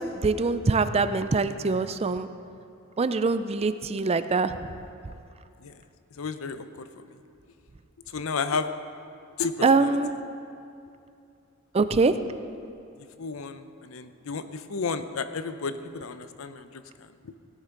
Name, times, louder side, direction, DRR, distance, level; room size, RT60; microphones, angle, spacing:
voice 1, 0.2-2.3 3.0-4.5 9.6-10.1 11.7-12.1, right 4 dB, 30° right, 12 dB, 0.4 m, -23 dB
voice 2, 6.2-6.6 7.0-7.1 8.1-8.7 9.4-9.5 9.8-9.9 13.2-16.7, left 5 dB, 85° left, 11 dB, 0.6 m, -32 dB
17.0 x 11.5 x 3.8 m, 2.5 s
head